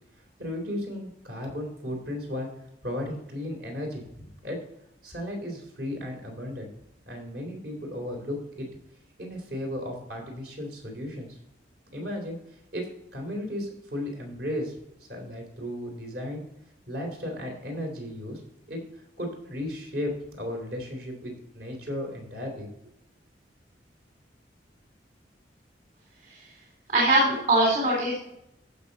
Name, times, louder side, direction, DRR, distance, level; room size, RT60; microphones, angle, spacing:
voice 1, 0.4-2.5 2.8-4.6 5.0-6.7 7.1-8.7 9.2-11.3 11.9-12.4 12.7-14.7 15.1-16.4 16.9-18.4 18.7-18.8 19.2-22.7, left 1 dB, 65° right, 2 dB, 3.6 m, -35 dB
voice 2, 26.9-28.1, right 1 dB, 45° right, -3 dB, 3.5 m, -21 dB
14.5 x 6.2 x 4.1 m, 0.80 s
head